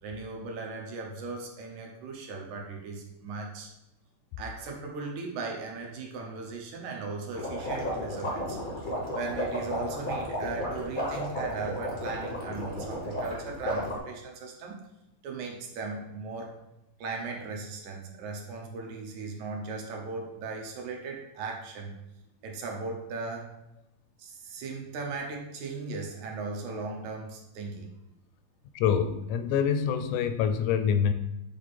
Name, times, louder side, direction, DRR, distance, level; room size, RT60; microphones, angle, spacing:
voice 1, 0.0-3.7 4.4-8.6 9.1-14.8 15.2-16.5 17.0-21.9 22.4-23.5 24.2-27.9, right 3 dB, 75° right, 0 dB, 2.3 m, -37 dB
sound 1, 7.3-14.0, equal, 65° left, 0.4 m, -33 dB
voice 2, 28.8-31.1, left 7 dB, 85° left, 9 dB, 2.0 m, -26 dB
7.5 x 3.4 x 4.1 m, 0.87 s
omnidirectional pair, 3.5 m